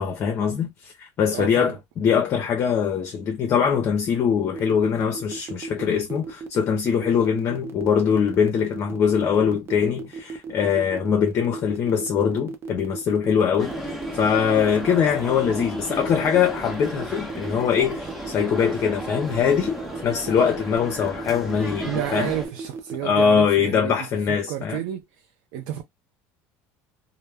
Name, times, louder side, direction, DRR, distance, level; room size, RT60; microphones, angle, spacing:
voice 1, 0.0-13.7 14.1-22.3 23.0-24.8, left 7 dB, 45° left, 0.5 m, -22 dB
voice 2, 1.3-1.8 21.8-25.0 25.5-25.8, right 11 dB, 75° right, 0.4 m, -31 dB
sound 1, 4.5-23.0, right 4 dB, 40° right, 0.6 m, -35 dB
sound 2, 13.6-22.5, equal, ahead, 0.8 m, -34 dB
2.1 x 2.0 x 3.3 m
supercardioid pair, 115°, 6 cm